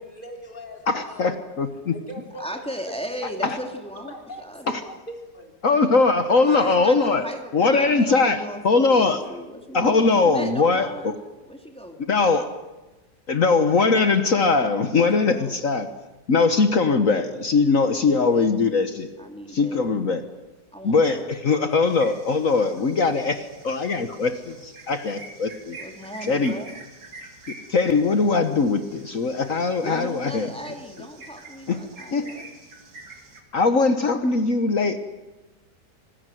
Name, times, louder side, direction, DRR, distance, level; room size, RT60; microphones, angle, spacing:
voice 1, 0.1-1.4 1.9-2.7 3.1-3.6 3.9-5.6 6.5-7.0, equal, 30° left, 2 dB, 3.6 m, -40 dB
voice 2, 0.9-1.9 4.7-4.8 5.6-7.2 7.5-9.2 9.7-11.1 12.1-12.5 13.3-15.9 16.3-19.1 19.5-20.2 20.8-25.8 26.2-26.5 27.7-30.5 31.7-31.8 32.1-32.3 33.5-35.0, left 4 dB, 50° left, 9 dB, 1.5 m, -21 dB
voice 3, 2.4-4.8 6.4-11.1 11.5-12.0 14.9-15.5 17.6-18.5 19.2-19.8 20.7-21.2 25.8-26.7 29.8-32.4, equal, 5° left, 3 dB, 2.8 m, -36 dB
sound 1, 21.9-33.4, right 2 dB, 65° right, 3.1 m, -46 dB
26.5 x 19.5 x 7.8 m, 1.1 s
omnidirectional pair, 1.8 m